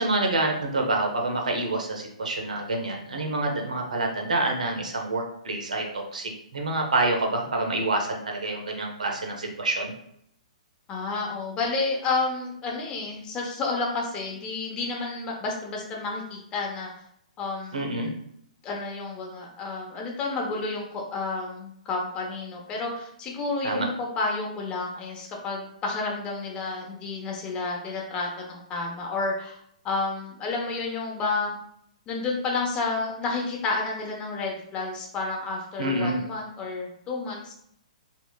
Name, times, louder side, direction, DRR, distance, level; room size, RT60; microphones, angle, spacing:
voice 1, 0.0-9.9 17.7-18.1 23.6-23.9 35.8-36.2, right 2 dB, 80° right, 2 dB, 1.1 m, -27 dB
voice 2, 10.9-16.9 17.4-17.9 18.6-29.6 29.8-31.6 32.1-37.5, left 3 dB, 25° left, -1 dB, 0.9 m, -30 dB
4.2 x 3.0 x 2.3 m, 0.70 s
hypercardioid pair, 125°, 4 cm